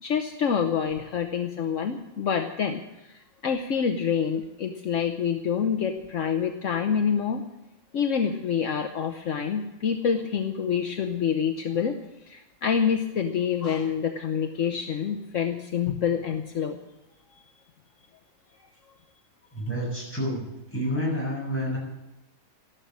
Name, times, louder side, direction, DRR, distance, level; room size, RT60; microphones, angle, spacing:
voice 1, 0.0-7.4 7.9-12.0 12.3-16.8, left 7 dB, 65° left, 6 dB, 1.2 m, -27 dB
voice 2, 19.5-20.4 20.7-21.8, equal, 10° left, -4 dB, 7.4 m, -29 dB
13.5 x 12.0 x 7.4 m, 0.98 s
omnidirectional pair, 1.4 m